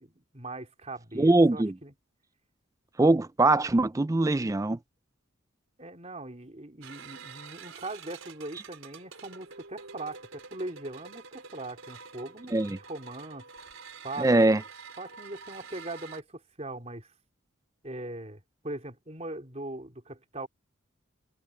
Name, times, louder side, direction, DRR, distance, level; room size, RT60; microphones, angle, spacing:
voice 1, 0.0-1.9 5.8-13.4 14.0-14.5 15.0-17.1 17.8-20.5, right 2 dB, 30° right, 3.7 m, -40 dB
voice 2, 1.2-1.7 3.0-4.8 12.5-12.8 14.2-14.6, right 2 dB, 15° right, 0.4 m, -22 dB
sound 1, 6.8-16.2, right 5 dB, 80° right, 4.4 m, -47 dB
head